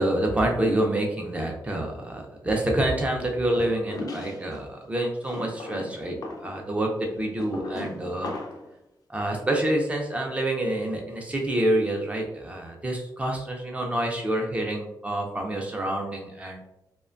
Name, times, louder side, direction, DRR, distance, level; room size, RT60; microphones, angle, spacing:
voice 1, 0.0-6.2 6.4-8.3 9.1-16.6, right 1 dB, 15° right, 1 dB, 0.4 m, -27 dB
sound 1, 3.6-4.6 5.2-8.7, left 2 dB, 50° left, 0.4 m, -37 dB
2.5 x 2.1 x 2.4 m, 0.87 s
wide cardioid pair, 180°, 8 cm